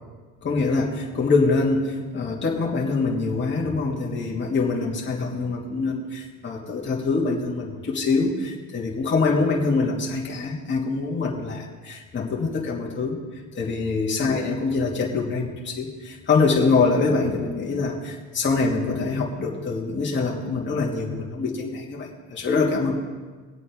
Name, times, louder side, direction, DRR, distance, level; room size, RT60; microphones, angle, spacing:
voice 1, 0.4-13.2 13.5-22.9, left 4 dB, 35° left, -3 dB, 2.9 m, -24 dB
22.5 x 8.4 x 3.7 m, 1.4 s
supercardioid pair, 80°, 34 cm